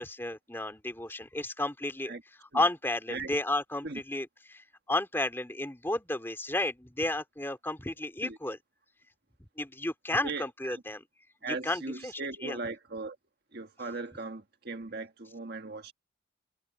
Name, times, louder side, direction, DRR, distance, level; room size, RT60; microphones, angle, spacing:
voice 1, 0.0-2.1 2.5-8.6 9.6-11.0 11.5-12.6, left 2 dB, 10° left, 3.1 m, -32 dB
voice 2, 10.2-10.8 11.4-13.2 13.5-15.9, right 3 dB, 55° right, 1.6 m, -38 dB
head